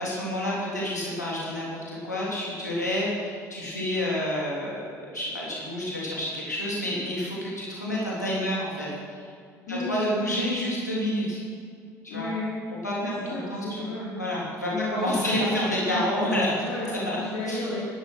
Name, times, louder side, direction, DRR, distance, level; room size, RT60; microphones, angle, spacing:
voice 1, 0.0-9.3 9.7-11.4 12.0-12.3 12.8-13.8 14.2-16.6 16.9-17.2 17.5-17.7, left 1 dB, 90° left, -6 dB, 3.4 m, -29 dB
voice 2, 9.7-10.4 12.1-12.5 13.0-14.2 14.7-16.0 16.6-16.9 17.2-17.8, left 2 dB, 65° left, -6 dB, 3.0 m, -32 dB
16.0 x 12.5 x 6.0 m, 2.2 s
figure-of-eight pair, 55°, 9 cm